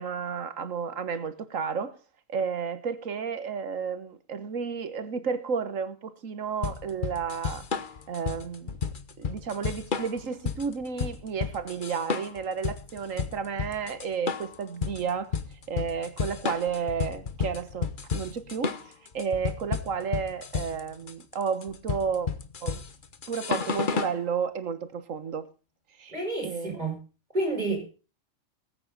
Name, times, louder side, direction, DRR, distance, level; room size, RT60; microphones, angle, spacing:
voice 1, 0.0-1.9 2.3-7.7 8.1-8.8 9.2-15.3 15.7-18.7 19.1-22.3 22.6-22.8 23.3-25.5 26.0-26.1 26.4-26.9, right 6 dB, 85° right, 12 dB, 1.6 m, -32 dB
sound 1, 6.6-24.2, left 6 dB, 45° left, 1.1 m, -32 dB
voice 2, 26.1-27.0 27.3-27.8, right 2 dB, 35° right, 1 dB, 6.8 m, -29 dB
19.5 x 8.9 x 4.0 m, 0.34 s
omnidirectional pair, 1.3 m